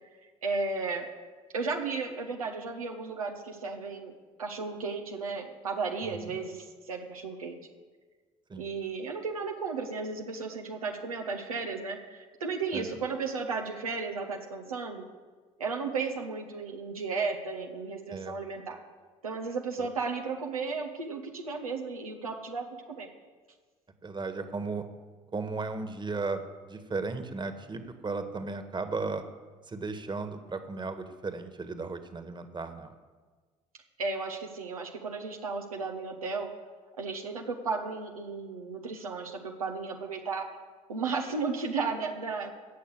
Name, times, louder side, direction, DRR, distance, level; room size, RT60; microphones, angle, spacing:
voice 1, 0.4-1.0 1.5-7.6 8.5-15.1 15.6-18.8 19.2-23.1 34.0-36.5 37.0-40.5 40.9-42.5, right 4 dB, 90° right, 2 dB, 1.2 m, -34 dB
voice 2, 6.0-6.4 8.5-8.7 12.7-12.9 18.1-18.4 19.8-19.9 24.0-24.8 25.3-29.2 29.7-32.9, right 3 dB, 25° right, 9 dB, 1.7 m, -35 dB
17.0 x 6.5 x 7.9 m, 1.4 s
hypercardioid pair, 55°, 18 cm